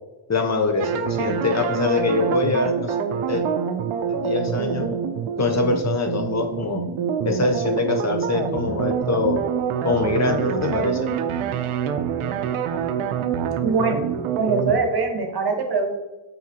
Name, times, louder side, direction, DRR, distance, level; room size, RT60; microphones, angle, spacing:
voice 1, 0.3-2.9 3.3-3.4 4.1-4.9 5.4-6.8 7.2-9.4 9.8-11.1, left 3 dB, 35° left, 4 dB, 0.6 m, -23 dB
sound 1, 0.8-14.8, right 7 dB, 75° right, 0.5 m, -26 dB
voice 2, 13.6-14.0 14.4-15.9, right 4 dB, 50° right, 4 dB, 1.0 m, -22 dB
4.8 x 2.8 x 2.8 m, 1.1 s
supercardioid pair, 50°, 50 cm